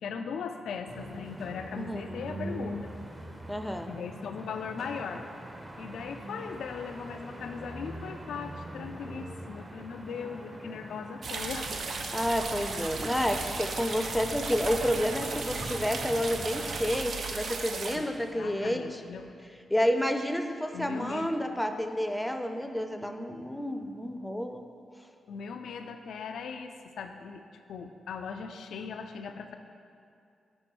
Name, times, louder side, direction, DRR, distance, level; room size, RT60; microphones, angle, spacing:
voice 1, 0.0-2.9 3.9-5.2 5.8-11.7 14.9-15.0 17.9-18.1 18.4-19.3 20.7-21.3 25.3-27.4 27.7-29.6, left 6 dB, 80° left, 7 dB, 0.4 m, -39 dB
sound 1, 0.9-17.0, right 1 dB, 25° right, 0.8 m, -43 dB
voice 2, 3.5-3.9 12.1-19.0 19.7-24.6, equal, 5° left, 6 dB, 0.5 m, -30 dB
sound 2, 11.2-18.0, right 4 dB, 70° right, 0.5 m, -35 dB
5.3 x 5.2 x 4.6 m, 2.5 s
supercardioid pair, 50°, 0 cm